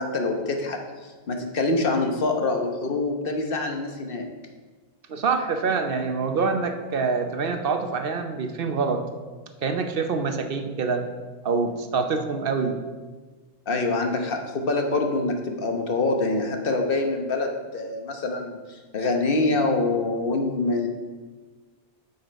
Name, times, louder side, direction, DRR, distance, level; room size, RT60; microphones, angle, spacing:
voice 1, 0.0-4.2 13.7-20.9, left 2 dB, 65° left, 4 dB, 1.2 m, -25 dB
voice 2, 5.1-9.1 9.6-11.1 11.4-12.8, right 4 dB, 65° right, 7 dB, 0.9 m, -25 dB
7.9 x 7.0 x 5.1 m, 1.4 s
omnidirectional pair, 1.0 m